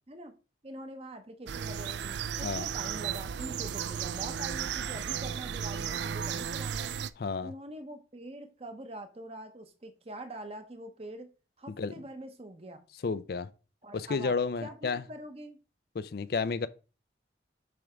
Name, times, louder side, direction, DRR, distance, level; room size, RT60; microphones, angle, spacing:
voice 1, 0.6-7.0 7.4-11.3 11.6-12.8 13.8-14.3 14.6-15.6, right 1 dB, 35° right, 0.8 m, -44 dB
sound 1, 1.5-7.1, right 8 dB, 70° right, 0.3 m, -34 dB
voice 2, 7.2-7.5 11.8-11.9 13.0-13.5 13.9-15.0 15.9-16.7, left 4 dB, 55° left, 0.4 m, -31 dB
7.1 x 3.5 x 4.9 m
head